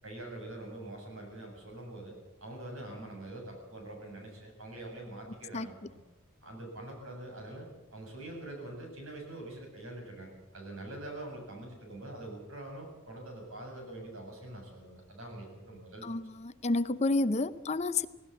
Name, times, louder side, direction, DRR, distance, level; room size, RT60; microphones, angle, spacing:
voice 1, 0.0-2.1 2.4-6.0 6.4-16.4, right 1 dB, 90° right, 7.7 m, -44 dB
voice 2, 16.0-18.1, left 2 dB, 35° left, 0.7 m, -30 dB
18.5 x 18.0 x 8.6 m
head